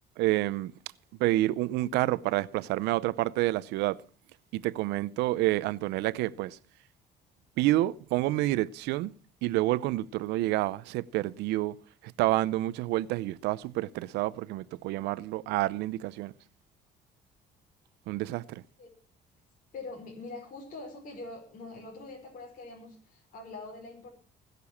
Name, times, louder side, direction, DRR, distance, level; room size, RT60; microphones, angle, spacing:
voice 1, 0.2-0.7 1.2-4.0 4.5-6.6 7.6-9.1 9.4-11.8 12.0-16.3 18.1-18.6, right 17 dB, 90° right, 0.6 m, -28 dB
voice 2, 19.7-24.1, left 3 dB, 50° left, 5.4 m, -43 dB
20.5 x 6.9 x 7.1 m
cardioid pair, 110°, 17 cm